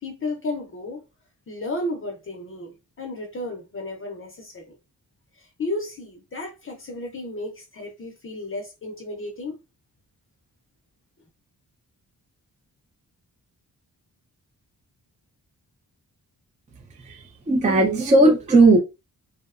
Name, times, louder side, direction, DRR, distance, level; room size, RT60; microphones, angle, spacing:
voice 1, 0.0-1.0 1.5-4.8 5.3-9.6, left 2 dB, 35° left, 0.5 m, -33 dB
voice 2, 17.0-18.8, right 2 dB, 20° right, 0.3 m, -17 dB
2.7 x 2.0 x 2.3 m
wide cardioid pair, 175°, 36 cm